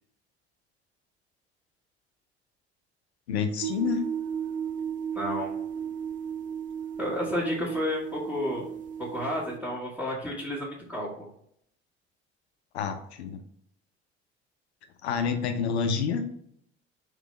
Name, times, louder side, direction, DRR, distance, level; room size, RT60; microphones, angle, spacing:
voice 1, 3.3-4.0 12.7-13.4 15.0-16.2, left 6 dB, 75° left, 6 dB, 0.5 m, -28 dB
sound 1, 3.6-9.6, right 8 dB, 25° right, 0.4 m, -35 dB
voice 2, 5.1-5.5 7.0-8.7 9.0-11.2, left 1 dB, 5° right, -10 dB, 1.3 m, -31 dB
3.4 x 3.2 x 3.1 m, 0.70 s
figure-of-eight pair, 60°, 33 cm